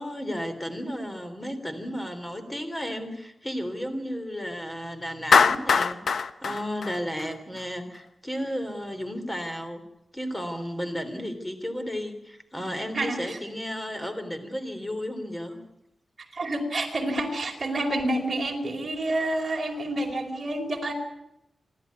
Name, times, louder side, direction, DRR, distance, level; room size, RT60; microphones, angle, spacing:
voice 1, 0.0-9.8 10.1-15.6, equal, 10° left, 8 dB, 3.3 m, -33 dB
Clapping, 5.3-7.6, left 5 dB, 80° left, 0.8 m, -22 dB
voice 2, 12.9-13.4 16.3-20.9, right 1 dB, 35° right, 2 dB, 4.6 m, -28 dB
28.0 x 12.5 x 9.5 m, 0.85 s
wide cardioid pair, 105°, 0 cm